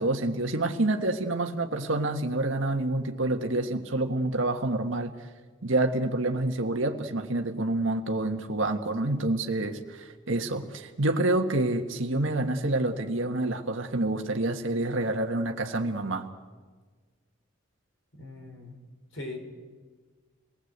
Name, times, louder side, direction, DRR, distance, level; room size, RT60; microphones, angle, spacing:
voice 1, 0.0-5.1 5.6-16.3, right 2 dB, 75° right, 4 dB, 1.6 m, -28 dB
voice 2, 18.1-18.8 19.1-19.4, left 2 dB, 80° left, 4 dB, 4.9 m, -40 dB
28.0 x 20.0 x 8.1 m, 1.4 s
head